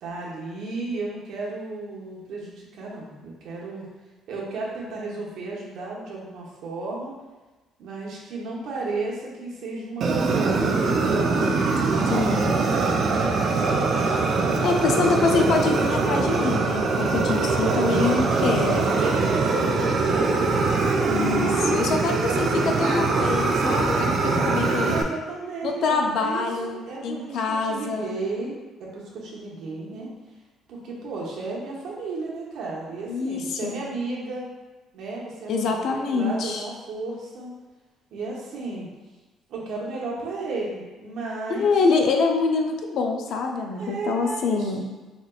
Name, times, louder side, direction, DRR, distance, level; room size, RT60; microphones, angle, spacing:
voice 1, 0.0-3.9 4.3-7.1 7.8-14.2 17.7-21.2 21.8-23.3 24.3-30.1 30.7-34.5 34.9-37.5 38.1-38.9 39.5-41.7 43.7-44.7, right 3 dB, 70° right, -4 dB, 0.9 m, -34 dB
Fire, 10.0-25.0, right 4 dB, 50° right, 0.3 m, -23 dB
voice 2, 12.1-12.5 14.6-18.9 21.1-24.9 25.6-28.2 33.1-33.8 35.5-36.7 41.5-44.8, left 4 dB, 65° left, 3 dB, 0.4 m, -25 dB
4.1 x 2.9 x 2.3 m, 1.2 s
cardioid pair, 130°, 0 cm